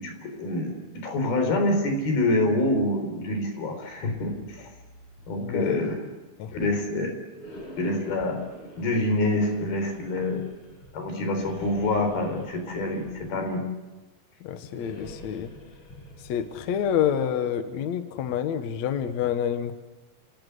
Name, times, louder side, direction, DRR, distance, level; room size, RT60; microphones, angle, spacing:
voice 1, 0.0-4.7 5.3-6.0 6.5-7.1 7.8-8.4 8.8-10.4 10.9-13.6, left 1 dB, 80° left, 5 dB, 6.0 m, -26 dB
sound 1, 3.9-6.0 7.3-10.9 11.3-13.7 14.7-17.4, left 1 dB, 35° left, 7.2 m, -47 dB
voice 2, 5.4-5.8 6.4-6.5 14.4-15.5 16.3-19.8, left 9 dB, 60° left, 9 dB, 2.0 m, -28 dB
30.0 x 18.0 x 8.2 m, 1.2 s
omnidirectional pair, 4.3 m